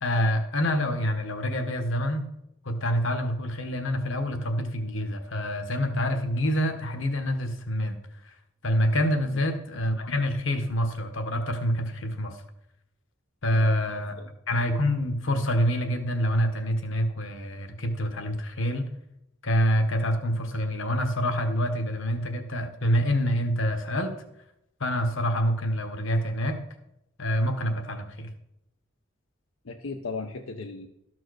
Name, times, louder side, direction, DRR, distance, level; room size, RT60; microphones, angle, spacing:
voice 1, 0.0-2.2 2.6-8.0 8.6-12.4 13.4-14.1 14.5-18.9 19.4-24.2 24.8-26.6 27.2-28.3, equal, 70° left, 7 dB, 1.2 m, -26 dB
voice 2, 29.6-30.9, left 4 dB, 90° left, 3 dB, 0.7 m, -36 dB
13.0 x 4.6 x 6.3 m, 0.84 s
head